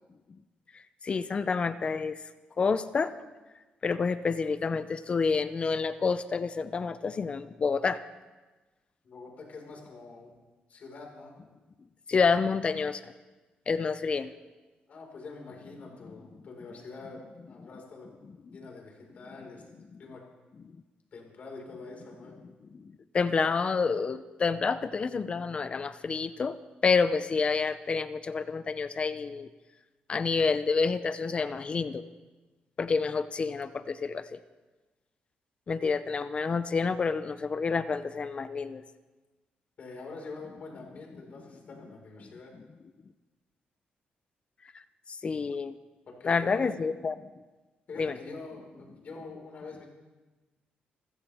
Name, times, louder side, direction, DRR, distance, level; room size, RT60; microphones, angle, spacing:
voice 1, 1.0-2.2 2.6-3.1 3.8-8.0 12.1-13.1 13.7-14.3 22.8-26.6 26.8-29.5 30.1-32.0 32.8-34.4 35.7-38.8 45.1-45.8 46.2-47.2 48.0-48.2, left 5 dB, 35° left, 13 dB, 0.6 m, -28 dB
voice 2, 9.0-10.3 10.7-11.3 14.9-18.1 18.5-19.7 20.0-20.2 21.1-22.4 39.8-42.5 46.1-46.7 47.9-49.9, left 3 dB, 50° left, 0 dB, 4.7 m, -45 dB
26.5 x 15.0 x 3.5 m, 1.2 s
cardioid pair, 125°, 3 cm